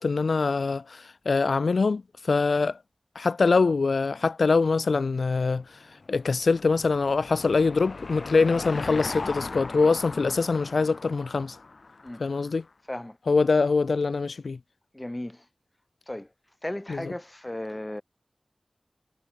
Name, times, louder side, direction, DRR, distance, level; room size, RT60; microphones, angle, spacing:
voice 1, 0.0-2.8 3.2-11.6 12.2-12.6 13.3-14.6 16.9-17.1, left 4 dB, 90° left, 0.4 m, -24 dB
Car passing by / Engine, 5.7-12.5, left 3 dB, 70° left, 5.0 m, -38 dB
voice 2, 14.9-15.5 16.1-16.3 16.6-18.0, left 1 dB, 20° left, 3.2 m, -35 dB
wide cardioid pair, 50°, 0 cm